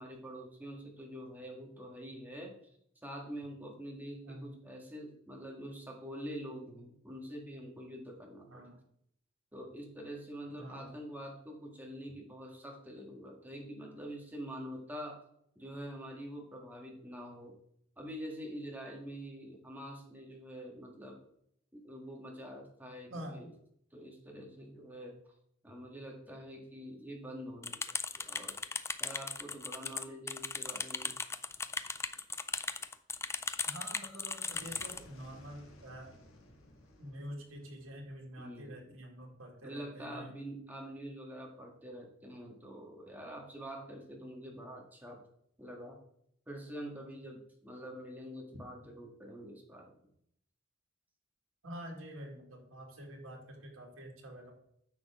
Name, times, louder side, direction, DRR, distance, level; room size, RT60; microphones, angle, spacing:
voice 1, 0.0-2.5 3.0-8.7 9.5-15.2 15.5-17.5 18.0-21.2 21.7-23.5 23.9-25.1 25.6-27.8 28.1-28.6 29.0-31.2 38.4-38.9 39.6-45.2 45.6-46.0 46.5-49.9, equal, 10° right, 0 dB, 1.8 m, -46 dB
voice 2, 8.5-8.8 10.5-11.0 23.1-23.4 33.6-36.1 37.0-40.4 51.6-54.5, equal, 80° right, 1 dB, 2.2 m, -47 dB
sound 1, 27.6-35.0, left 4 dB, 15° left, 0.3 m, -37 dB
sound 2, 33.7-39.4, left 2 dB, 80° left, 1.7 m, -58 dB
9.7 x 6.4 x 3.6 m, 0.71 s
head